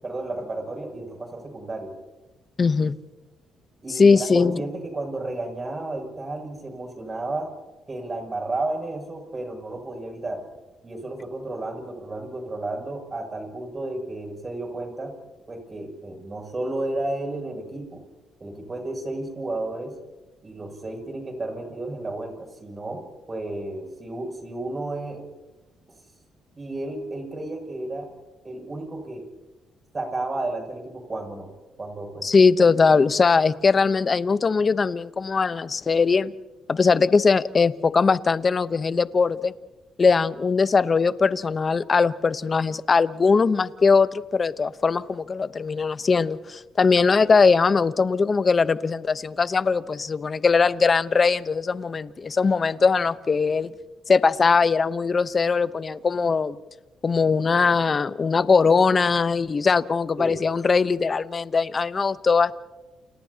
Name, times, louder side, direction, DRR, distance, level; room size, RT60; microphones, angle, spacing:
voice 1, 0.0-1.9 3.8-7.5 7.9-10.4 10.8-15.1 15.5-18.0 18.4-19.9 20.4-25.2 26.6-28.1 28.4-29.2 29.9-31.5 31.8-32.3 60.2-60.4, right 2 dB, 30° right, 3 dB, 7.4 m, -32 dB
voice 2, 2.6-3.0 3.9-4.6 32.2-36.3 36.7-39.5 40.0-53.7 54.1-56.6 57.0-62.5, left 5 dB, 35° left, 13 dB, 0.9 m, -20 dB
30.0 x 29.5 x 2.9 m, 1.1 s
cardioid pair, 90°, 0 cm